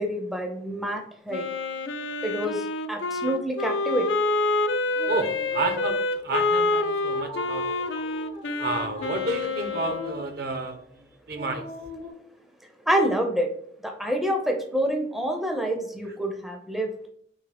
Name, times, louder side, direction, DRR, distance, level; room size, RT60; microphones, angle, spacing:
voice 1, 0.0-1.5 2.2-4.1 12.9-13.5 13.8-16.9, right 1 dB, ahead, 3 dB, 0.4 m, -27 dB
Wind instrument woodwind instrument, 1.3-10.2, left 3 dB, 90° left, 0.4 m, -27 dB
sound 1, 4.9-6.0 6.6-10.8 11.3-12.1, left 1 dB, 85° right, 1.5 m, -41 dB
voice 2, 5.1-7.6 8.6-10.8 11.3-11.7, right 3 dB, 60° right, 6 dB, 0.5 m, -30 dB
3.6 x 2.7 x 3.3 m, 0.65 s
head